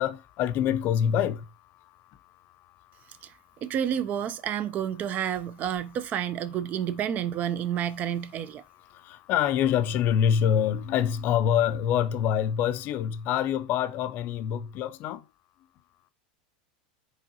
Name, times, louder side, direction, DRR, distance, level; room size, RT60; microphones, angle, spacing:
voice 1, 0.0-1.5 8.9-15.2, left 9 dB, 45° left, 0.4 m, -25 dB
voice 2, 3.6-8.6, right 9 dB, 35° right, 0.3 m, -30 dB
4.6 x 3.0 x 2.7 m
hypercardioid pair, 110°, 5 cm